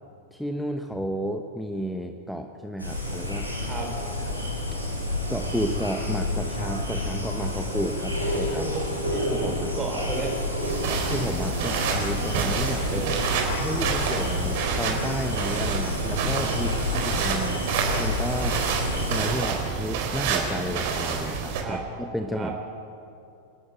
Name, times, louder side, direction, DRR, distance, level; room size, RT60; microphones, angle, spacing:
voice 1, 0.3-3.6 5.3-8.6 9.2-9.7 11.0-13.0 13.6-17.6 18.0-18.6 19.1-22.6, equal, ahead, 5 dB, 1.1 m, -32 dB
sound 1, 2.8-19.2, left 1 dB, 85° left, 7.7 m, -29 dB
voice 2, 8.4-10.5 12.9-13.3 16.6-17.6 18.3-18.7 21.6-21.8 22.3-22.5, right 3 dB, 20° right, 0 dB, 3.8 m, -34 dB
sound 2, 10.6-21.6, right 5 dB, 50° right, 4.2 m, -28 dB
28.0 x 12.0 x 9.2 m, 2.6 s
figure-of-eight pair, 90°, 0 cm